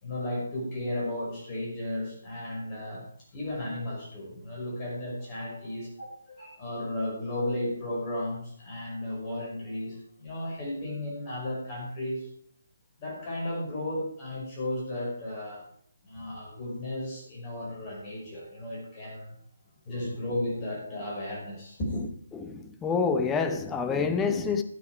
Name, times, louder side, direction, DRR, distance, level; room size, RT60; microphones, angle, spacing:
voice 1, 0.0-3.1 3.3-12.3 13.0-15.6 16.0-19.4 19.9-22.1, left 1 dB, 25° left, 5.5 m, -34 dB
voice 2, 22.3-24.6, left 5 dB, 10° left, 0.7 m, -27 dB
12.5 x 8.9 x 4.8 m
figure-of-eight pair, 145°, 0 cm